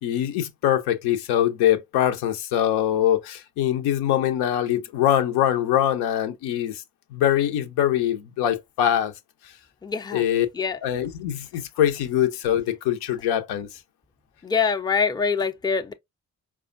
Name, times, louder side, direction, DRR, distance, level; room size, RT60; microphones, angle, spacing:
voice 1, 0.0-6.8 7.1-9.1 10.1-10.5 10.8-13.7, left 11 dB, 75° left, 0.7 m, -23 dB
voice 2, 9.8-10.2 10.5-10.8 14.4-15.9, left 5 dB, 10° left, 0.5 m, -24 dB
4.8 x 2.2 x 2.5 m
hypercardioid pair, 45°, 40 cm